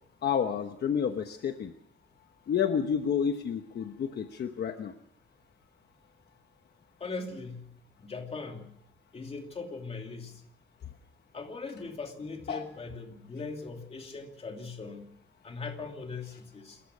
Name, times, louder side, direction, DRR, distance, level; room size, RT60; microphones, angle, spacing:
voice 1, 0.2-1.7 2.5-4.9 12.5-12.6, left 7 dB, 60° left, 7 dB, 1.1 m, -30 dB
voice 2, 7.0-7.7 8.0-8.7 9.1-10.4 11.3-15.1 15.4-16.8, left 4 dB, 30° left, 3 dB, 2.8 m, -40 dB
27.5 x 15.0 x 6.3 m, 0.71 s
wide cardioid pair, 170°, 19 cm